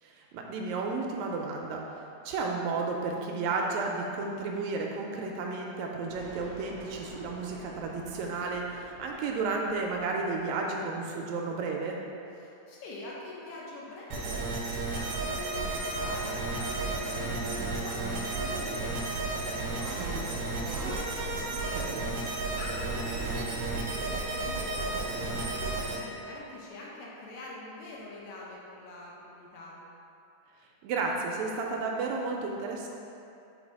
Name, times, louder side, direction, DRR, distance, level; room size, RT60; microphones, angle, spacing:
voice 1, 0.0-1.8 2.3-12.0 21.5-22.0 30.8-32.9, right 3 dB, 80° right, 0 dB, 1.8 m, -32 dB
sound 1, 6.1-11.0, right 2 dB, 40° right, 1.0 m, -50 dB
voice 2, 12.3-21.6 22.5-29.8, left 2 dB, 75° left, -4 dB, 2.2 m, -45 dB
sound 2, 14.1-26.0, right 3 dB, 65° right, 1.7 m, -32 dB
Bowed string instrument, 15.2-18.7, right 1 dB, 45° left, 2.0 m, -44 dB
4.9 x 4.0 x 5.2 m, 2.7 s
omnidirectional pair, 3.4 m